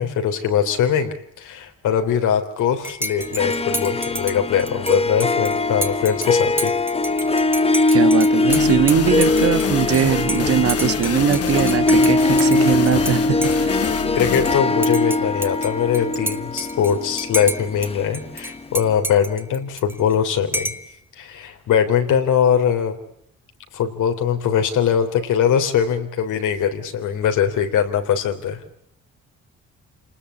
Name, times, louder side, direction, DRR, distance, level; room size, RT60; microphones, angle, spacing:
voice 1, 0.0-6.7 14.1-20.7 21.2-23.0 23.7-28.6, left 8 dB, 80° left, 6 dB, 3.6 m, -21 dB
Dishes pots and pans / Cutlery silverware / Chink clink, 2.8-13.1 13.4-14.5 14.8-17.9 18.1-20.1 20.5-20.9, right 1 dB, 5° right, 1.9 m, -30 dB
Harp, 3.2-18.6, left 2 dB, 20° left, 1.0 m, -21 dB
voice 2, 7.9-13.8, right 8 dB, 50° right, 13 dB, 1.5 m, -21 dB
sound 1, 8.5-16.0, left 9 dB, 50° left, 1.2 m, -28 dB
28.0 x 20.0 x 8.4 m, 0.69 s
cardioid pair, 90°, 30 cm